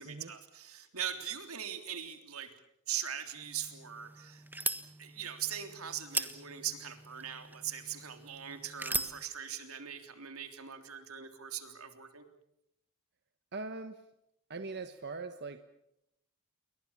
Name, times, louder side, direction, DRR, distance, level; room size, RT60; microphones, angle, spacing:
voice 1, 0.0-2.5 2.9-4.4 5.0-12.2, right 9 dB, 85° right, 7 dB, 3.4 m, -41 dB
sound 1, 3.4-9.2, right 2 dB, 10° right, 1.4 m, -40 dB
voice 2, 13.5-14.0 14.5-15.6, right 3 dB, 50° right, 8 dB, 1.4 m, -41 dB
29.5 x 22.5 x 7.4 m, 0.80 s
head